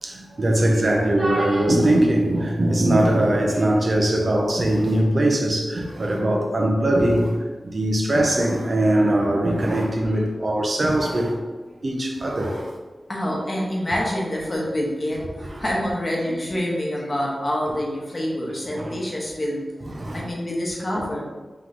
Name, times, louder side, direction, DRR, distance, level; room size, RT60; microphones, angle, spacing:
voice 1, 0.0-7.4 7.6-11.4 11.8-12.7 15.4-15.6 16.3-16.4 18.7-19.0 19.8-20.3 21.0-21.2, right 1 dB, 45° right, 0 dB, 0.6 m, -21 dB
voice 2, 13.1-15.2 15.6-19.6 20.1-21.2, equal, 35° left, -3 dB, 1.0 m, -26 dB
3.7 x 3.1 x 3.8 m, 1.3 s
wide cardioid pair, 90°, 0 cm